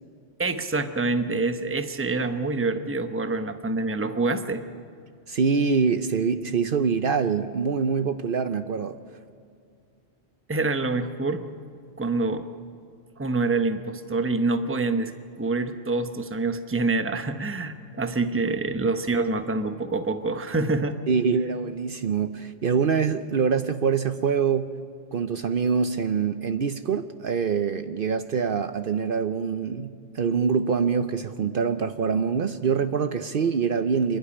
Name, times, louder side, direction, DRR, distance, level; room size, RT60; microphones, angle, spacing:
voice 1, 0.4-4.6 10.5-11.5 12.0-12.5 13.2-15.1 15.4-21.0, right 3 dB, 15° right, 8 dB, 0.8 m, -26 dB
voice 2, 5.3-9.0 21.1-24.7 25.1-34.2, right 6 dB, 60° right, 10 dB, 0.9 m, -25 dB
27.0 x 12.0 x 9.8 m, 2.3 s
omnidirectional pair, 1.1 m